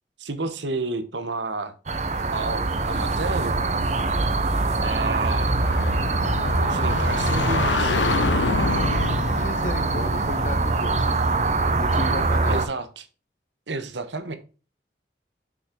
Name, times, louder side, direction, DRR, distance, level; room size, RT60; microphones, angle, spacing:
voice 1, 0.2-1.7 2.3-3.6 4.8-5.5 6.7-8.0 12.5-13.0 13.7-14.4, right 3 dB, 85° right, 1.0 m, -31 dB
sound 1, 1.9-12.7, right 3 dB, 40° right, 0.7 m, -23 dB
sound 2, 5.4-12.0, left 5 dB, 85° left, 0.5 m, -28 dB
voice 2, 9.2-11.2 11.8-12.6, left 1 dB, 45° left, 1.5 m, -34 dB
6.3 x 5.7 x 3.8 m
head